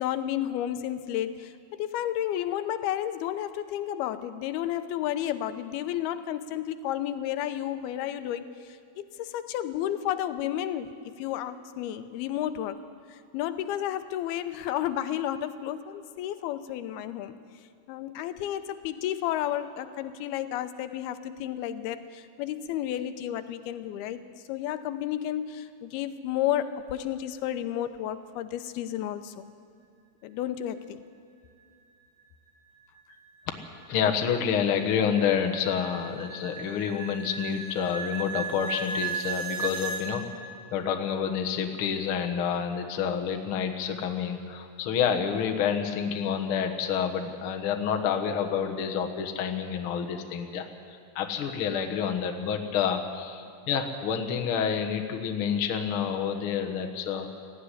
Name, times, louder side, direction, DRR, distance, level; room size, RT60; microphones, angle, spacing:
voice 1, 0.0-12.8 13.1-17.4 17.9-24.2 24.5-29.5 30.2-31.0, left 11 dB, 90° left, 11 dB, 2.7 m, -32 dB
sound 1, 32.9-40.0, right 5 dB, 80° right, 5.8 m, -36 dB
voice 2, 33.9-50.7 51.1-57.4, left 7 dB, 60° left, 5 dB, 1.4 m, -28 dB
18.0 x 15.0 x 10.0 m, 2.4 s
omnidirectional pair, 4.4 m